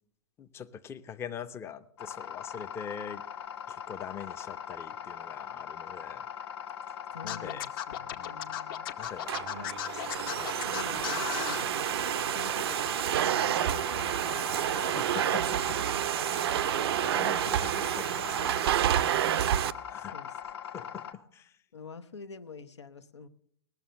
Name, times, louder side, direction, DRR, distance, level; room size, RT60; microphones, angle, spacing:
voice 1, 0.4-3.2 3.7-6.3 6.9-7.0 7.2-7.7 8.0-8.5 9.0-10.3 14.2-15.8 16.2-19.3 19.8-20.4 20.7-21.6, left 8 dB, 20° left, 10 dB, 0.5 m, -44 dB
sound 1, 2.0-21.1, left 8 dB, 65° left, 1.2 m, -41 dB
voice 2, 7.1-8.9 9.5-9.7 10.6-11.9 12.3-14.4 20.1-20.3 20.8-20.9 21.7-23.3, left 5 dB, 85° left, 10 dB, 0.8 m, -47 dB
Scratching (performance technique), 7.3-11.6, left 11 dB, 50° left, 0.9 m, -36 dB
Domestic sounds home sounds, 9.0-19.7, right 11 dB, 60° right, 0.5 m, -29 dB
19.0 x 7.0 x 6.3 m, 0.66 s
hypercardioid pair, 115°, 14 cm